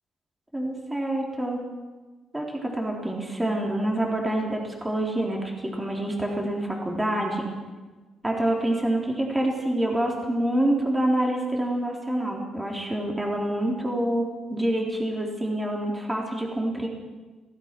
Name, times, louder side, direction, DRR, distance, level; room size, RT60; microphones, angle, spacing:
voice 1, 0.5-1.6 2.3-7.5 8.2-16.9, right 1 dB, 10° right, 0 dB, 4.0 m, -27 dB
26.5 x 17.5 x 6.2 m, 1.3 s
cardioid pair, 120°, 0 cm